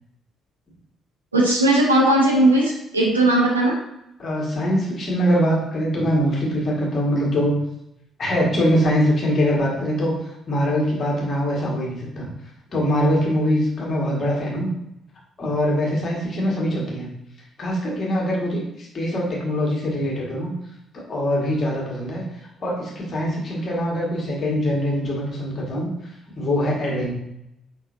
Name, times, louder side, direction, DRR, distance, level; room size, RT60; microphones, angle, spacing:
voice 1, 1.3-3.7, right 1 dB, 85° right, -3 dB, 0.8 m, -17 dB
voice 2, 4.2-7.6 8.2-10.1 10.5-12.3 12.7-14.7 15.4-17.1 17.6-20.5 20.9-22.2 22.6-25.9 26.3-27.1, equal, 40° left, -3 dB, 1.6 m, -23 dB
5.1 x 3.8 x 2.6 m, 0.81 s
figure-of-eight pair, 45°, 0 cm